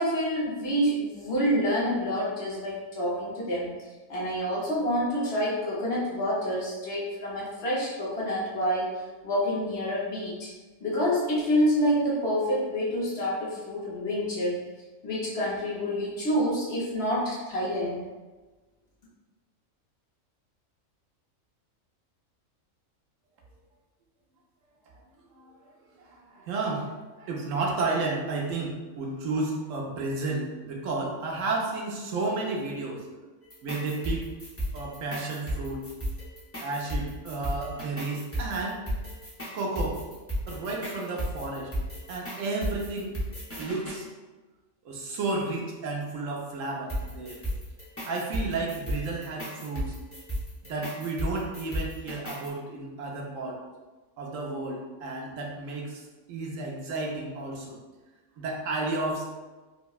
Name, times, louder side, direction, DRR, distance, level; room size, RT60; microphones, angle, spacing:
voice 1, 0.0-3.7 4.1-8.9 9.2-10.5 10.8-14.6 15.0-18.0, equal, 55° left, -6 dB, 1.0 m, -27 dB
voice 2, 25.3-25.7 26.0-33.0 33.6-34.2 34.7-35.8 36.6-38.8 39.5-40.0 40.5-41.7 42.1-43.1 43.6-44.1 44.8-47.4 48.0-49.9 50.6-53.6 54.2-56.0 56.3-57.8 58.4-59.3, right 3 dB, 75° right, -1 dB, 1.0 m, -32 dB
sound 1, 33.4-44.0 46.9-52.5, equal, 20° left, 0.4 m, -34 dB
4.7 x 2.1 x 2.3 m, 1.2 s
omnidirectional pair, 1.4 m